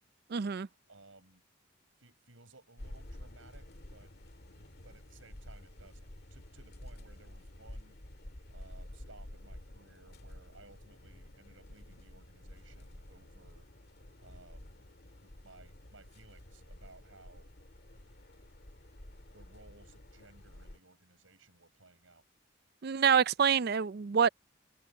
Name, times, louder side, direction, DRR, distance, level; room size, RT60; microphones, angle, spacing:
voice 1, 0.3-0.7 22.8-24.3, right 7 dB, 50° right, 0.4 m, -26 dB
voice 2, 0.9-1.4 2.0-4.1 4.5-8.0 8.5-13.7 14.2-14.8 15.2-17.5 19.3-22.2, right 3 dB, 75° right, 6.6 m, -59 dB
sound 1, 2.8-20.8, left 1 dB, 50° left, 1.9 m, -51 dB
head